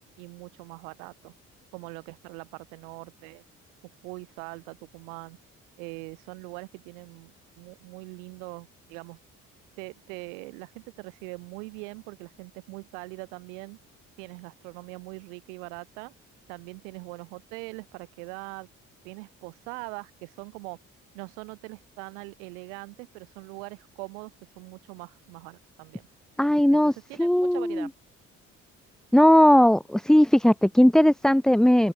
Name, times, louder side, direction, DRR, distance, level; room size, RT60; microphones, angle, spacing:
voice 1, 0.0-1.3 1.7-3.4 4.0-5.4 5.8-9.2 9.8-13.8 14.2-16.1 16.5-18.7 19.0-20.8 21.1-26.1 26.7-27.9, right 35 dB, 90° right, 4.1 m, -42 dB
voice 2, 26.4-26.9 27.2-27.9 29.1-31.9, equal, ahead, 0.4 m, -18 dB
open air
hypercardioid pair, 55°, 35 cm